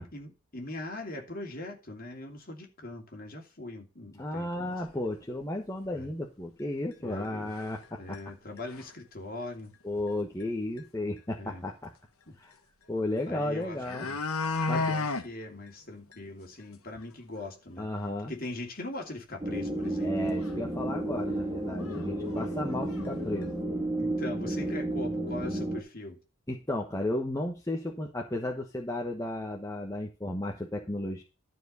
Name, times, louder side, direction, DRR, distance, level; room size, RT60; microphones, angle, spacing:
voice 1, 0.0-4.8 5.9-6.1 7.0-7.5 8.0-9.7 11.4-11.6 12.3-12.4 13.3-14.2 14.7-17.9 18.3-20.1 21.9-22.1 24.0-26.2, left 2 dB, 40° left, 2.8 m, -41 dB
voice 2, 4.2-8.2 9.8-11.9 12.4-12.5 12.9-14.1 14.7-14.9 17.8-18.3 20.0-23.5 26.5-31.2, left 1 dB, 15° left, 1.1 m, -34 dB
sound 1, 4.8-4.9 5.4-5.5 5.8-5.9 6.9-7.0 7.6-7.9 8.1-8.2 8.6-9.0 10.4-10.5 10.8-10.9 13.2-13.3 13.6-15.3 15.7-15.8 16.1-16.2 16.6-16.7 17.0-17.1 19.9-20.0 20.4-20.5 21.3-21.4 21.8-22.0 22.3-23.1 23.4-23.5, left 3 dB, 75° left, 1.6 m, -32 dB
sound 2, 19.4-25.8, right 1 dB, 15° right, 3.2 m, -32 dB
12.5 x 4.7 x 6.8 m
head